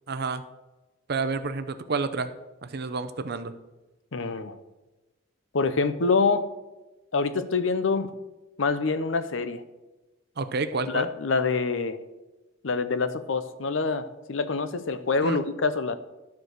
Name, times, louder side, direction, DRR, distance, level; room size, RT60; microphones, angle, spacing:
voice 1, 0.1-0.4 1.1-2.3 2.6-3.5 10.4-11.1 15.2-15.4, right 4 dB, 55° right, 10 dB, 0.6 m, -29 dB
voice 2, 4.1-4.6 5.5-6.5 7.1-8.1 8.6-9.6 10.9-12.0 12.6-16.0, left 4 dB, 70° left, 11 dB, 0.7 m, -26 dB
12.5 x 4.7 x 6.5 m, 1.1 s
head